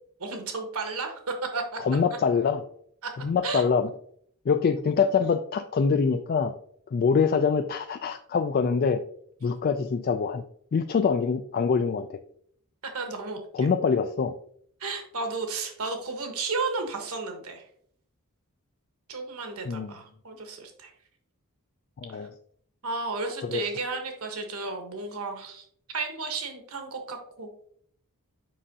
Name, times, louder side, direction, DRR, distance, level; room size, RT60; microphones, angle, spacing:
voice 1, 0.2-1.8 3.0-3.1 3.4-3.6 12.8-13.7 14.8-17.6 19.1-20.9 22.1-22.3 22.8-25.6 25.9-27.5, right 3 dB, 70° right, 4 dB, 1.3 m, -33 dB
voice 2, 1.8-2.6 3.2-3.9 4.5-6.5 6.9-9.0 9.4-10.4 10.7-12.2 13.5-14.3 19.7-19.9 22.0-22.3 23.5-23.7, left 5 dB, 40° left, 8 dB, 0.3 m, -24 dB
7.4 x 5.5 x 2.8 m, 0.63 s
head